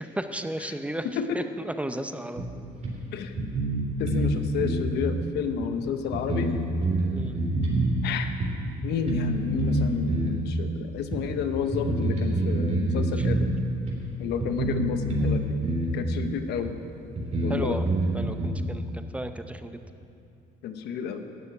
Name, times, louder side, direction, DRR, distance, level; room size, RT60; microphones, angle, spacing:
voice 1, 0.0-1.1 1.3-2.4 7.1-7.4 13.2-13.3 15.2-15.3 17.5-17.9 18.1-19.8, right 1 dB, 5° right, 8 dB, 0.6 m, -34 dB
sound 1, 2.4-2.5 2.8-2.9 3.4-4.3 4.6-4.9 5.6-5.7 6.1-7.9 8.4-8.5 9.1-9.3 9.6-10.4 11.1-11.2 11.7-13.5 13.9-14.0 14.4-15.3 15.6-15.9 16.6-16.7 17.2-18.5, right 2 dB, 40° right, 3.5 m, -26 dB
voice 2, 3.1-3.4 4.0-6.6 8.0-8.3 8.8-13.5 14.2-15.6 15.9-16.8 17.4-17.8 20.6-21.2, left 7 dB, 80° left, 8 dB, 0.9 m, -30 dB
12.0 x 6.9 x 9.7 m, 2.6 s
cardioid pair, 110°, 17 cm